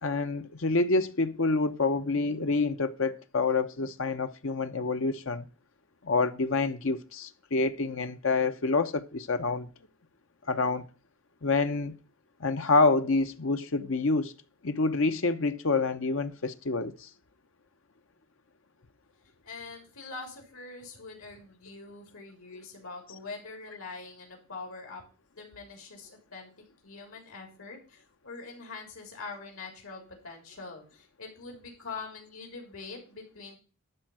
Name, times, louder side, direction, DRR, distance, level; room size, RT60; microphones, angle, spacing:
voice 1, 0.0-5.5 6.0-9.7 10.5-10.8 11.4-11.9 12.4-14.3 14.6-17.1, left 3 dB, 70° left, 0.9 m, -27 dB
voice 2, 19.4-25.0 25.4-26.5 26.8-33.6, left 4 dB, 85° left, 3.7 m, -44 dB
12.0 x 4.6 x 7.8 m
head